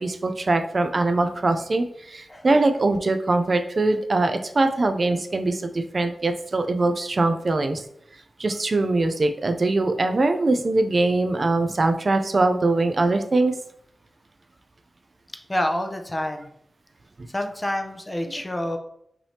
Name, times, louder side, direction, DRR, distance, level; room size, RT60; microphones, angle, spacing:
voice 1, 0.0-7.8 8.4-13.5, right 2 dB, 45° right, 7 dB, 0.4 m, -22 dB
voice 2, 2.3-2.6 15.5-16.5 17.3-18.8, left 1 dB, 20° left, 5 dB, 0.6 m, -28 dB
5.8 x 3.3 x 2.8 m, 0.72 s
wide cardioid pair, 90°, 0 cm